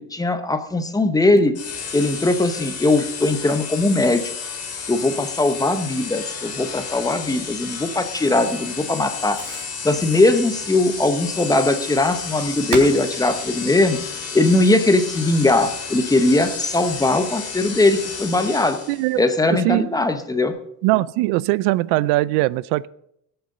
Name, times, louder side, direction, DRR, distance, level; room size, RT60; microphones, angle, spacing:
voice 1, 0.0-1.5 1.9-4.2 4.9-9.4 9.8-14.0 14.3-18.8 19.2-20.5, left 2 dB, 10° left, 8 dB, 0.8 m, -19 dB
Fireworks, 0.6-15.2, right 5 dB, 60° right, 3.8 m, -41 dB
sound 1, 1.5-19.1, left 6 dB, 35° left, 2.7 m, -32 dB
voice 2, 18.9-19.2 19.5-19.9 20.8-22.9, right 18 dB, 80° right, 20 dB, 0.5 m, -20 dB
17.5 x 7.9 x 5.4 m, 0.75 s
cardioid pair, 155°, 41 cm